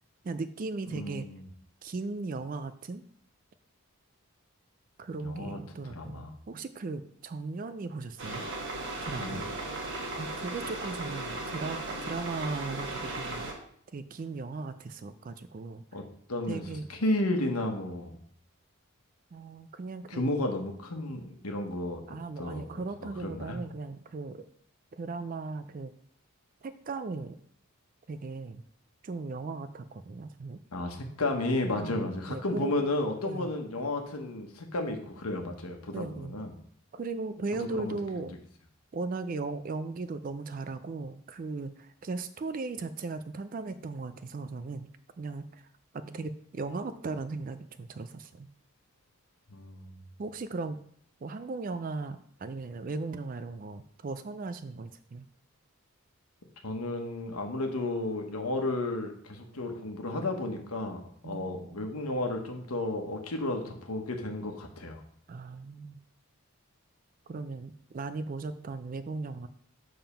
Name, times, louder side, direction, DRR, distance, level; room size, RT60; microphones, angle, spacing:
voice 1, 0.2-1.3 1.8-3.0 5.0-8.5 9.0-9.4 10.2-13.5 13.9-15.8 16.5-16.9 19.3-20.4 22.1-24.4 24.9-25.9 26.6-27.4 28.1-28.6 29.0-30.6 31.8-32.9 33.2-33.5 35.9-36.4 36.9-38.3 38.9-44.9 45.2-45.6 45.9-48.5 50.2-50.8 51.2-55.3 61.2-61.7 65.3-66.0 67.3-69.5, right 3 dB, 40° right, 11 dB, 0.3 m, -37 dB
voice 2, 0.9-1.4 5.2-6.3 9.2-9.4 15.9-16.0 16.3-16.6 16.9-18.2 20.1-22.0 22.4-22.6 23.0-23.6 30.7-36.5 37.7-37.9 49.5-50.0 56.6-65.0, left 2 dB, 80° left, 3 dB, 1.2 m, -33 dB
sound 1, 8.2-13.5, right 2 dB, 55° right, 1.3 m, -36 dB
7.1 x 3.7 x 5.7 m, 0.64 s
head